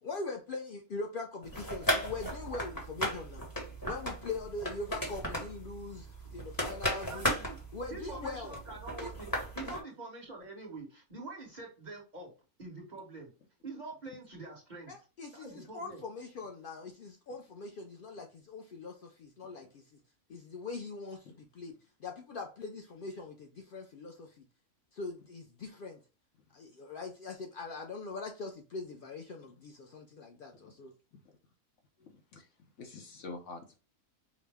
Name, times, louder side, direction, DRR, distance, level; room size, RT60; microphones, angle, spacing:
voice 1, 0.0-3.5 3.8-7.3 7.7-8.6 9.0-9.1 9.6-9.8 14.9-20.0 20.3-24.4 24.9-26.0 26.5-30.9, left 3 dB, 80° left, 0.4 m, -42 dB
sound 1, 1.4-9.8, equal, 15° left, 0.9 m, -36 dB
voice 2, 6.9-7.6 7.9-12.3 12.6-13.3 13.6-14.9 15.3-16.0, right 3 dB, 30° right, 1.2 m, -45 dB
voice 3, 32.0-32.5 32.8-33.8, left 3 dB, 65° left, 0.9 m, -47 dB
4.8 x 2.1 x 3.3 m
omnidirectional pair, 1.5 m